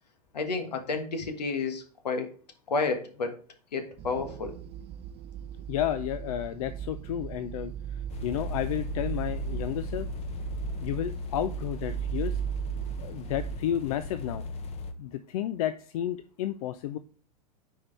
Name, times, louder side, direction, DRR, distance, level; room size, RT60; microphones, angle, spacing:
voice 1, 0.3-2.3 2.7-3.4 3.7-4.5, left 4 dB, 80° left, 7 dB, 1.6 m, -31 dB
sound 1, 4.0-13.6, right 9 dB, 30° right, 0.4 m, -36 dB
voice 2, 5.7-10.1 10.8-12.4 13.0-14.4 15.0-17.0, left 11 dB, 60° left, 11 dB, 0.6 m, -32 dB
sound 2, 8.1-14.9, left 4 dB, 30° left, 1.0 m, -38 dB
9.6 x 4.7 x 3.3 m, 0.41 s
hypercardioid pair, 95°, 21 cm